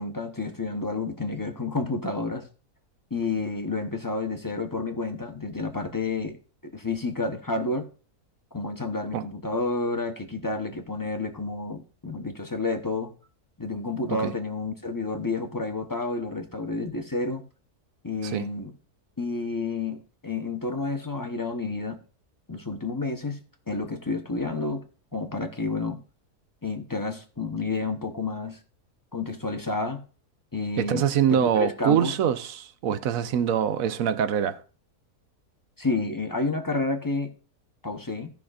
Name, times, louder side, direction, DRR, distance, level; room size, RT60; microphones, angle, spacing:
voice 1, 0.0-2.4 3.1-6.4 6.6-7.9 8.5-13.1 13.6-17.4 18.0-18.7 19.2-22.0 22.5-23.4 23.7-24.8 25.1-26.0 26.6-28.6 29.1-30.0 30.5-31.0 31.3-32.1 35.8-37.3 37.8-38.3, left 3 dB, 20° left, 0.6 m, -30 dB
voice 2, 30.8-34.6, right 9 dB, 70° right, 1.1 m, -24 dB
17.0 x 5.9 x 2.4 m
omnidirectional pair, 1.6 m